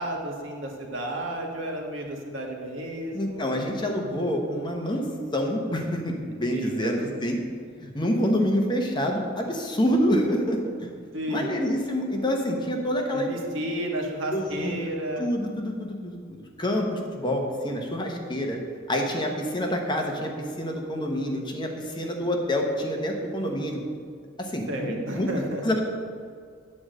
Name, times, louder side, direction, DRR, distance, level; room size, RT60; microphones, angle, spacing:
voice 1, 0.0-3.5 6.5-6.9 11.1-11.5 13.1-15.3 24.7-25.6, right 1 dB, 70° right, 0 dB, 1.5 m, -32 dB
voice 2, 3.1-5.1 5.3-7.4 7.8-10.9 11.3-13.3 14.3-14.8 15.2-18.6 18.9-20.3 20.6-23.8 24.4-25.3 25.6-25.8, equal, 25° left, 1 dB, 1.0 m, -27 dB
8.7 x 4.9 x 7.6 m, 2.1 s
head